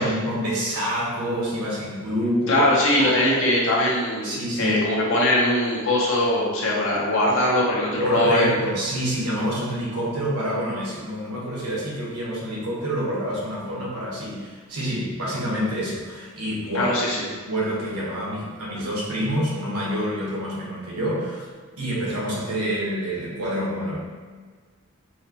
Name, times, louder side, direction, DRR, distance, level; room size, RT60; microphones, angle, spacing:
voice 1, 0.0-2.6 2.9-3.3 4.2-4.8 8.0-16.9 17.5-21.4 21.8-24.0, equal, 85° right, -4 dB, 1.1 m, -27 dB
voice 2, 2.5-8.5 16.7-17.2, left 1 dB, 60° left, -4 dB, 0.9 m, -21 dB
4.6 x 2.3 x 2.9 m, 1.5 s
head